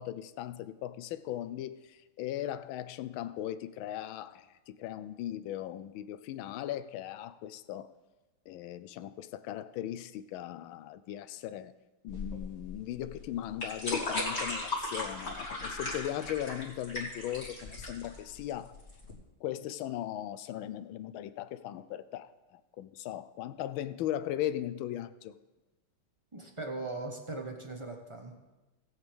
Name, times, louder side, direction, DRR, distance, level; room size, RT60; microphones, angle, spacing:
voice 1, 0.0-7.9 8.5-11.7 12.0-18.7 19.4-25.3, left 12 dB, 75° left, 13 dB, 1.3 m, -38 dB
sound 1, 12.1-19.1, left 2 dB, 30° left, 2.9 m, -37 dB
voice 2, 26.3-28.3, right 2 dB, 20° right, 2 dB, 0.8 m, -39 dB
19.0 x 8.2 x 3.5 m, 1.1 s
omnidirectional pair, 2.4 m